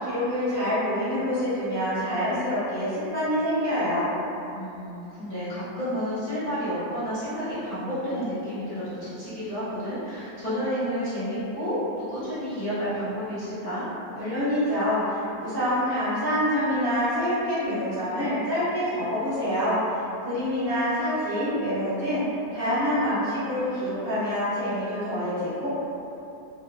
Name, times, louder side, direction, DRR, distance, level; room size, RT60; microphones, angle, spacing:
voice 1, 0.0-4.1 14.1-22.2 22.5-25.7, equal, 45° right, -13 dB, 1.0 m, -26 dB
voice 2, 4.5-13.8, equal, 50° left, -15 dB, 0.4 m, -30 dB
2.9 x 2.1 x 2.4 m, 2.9 s
omnidirectional pair, 1.6 m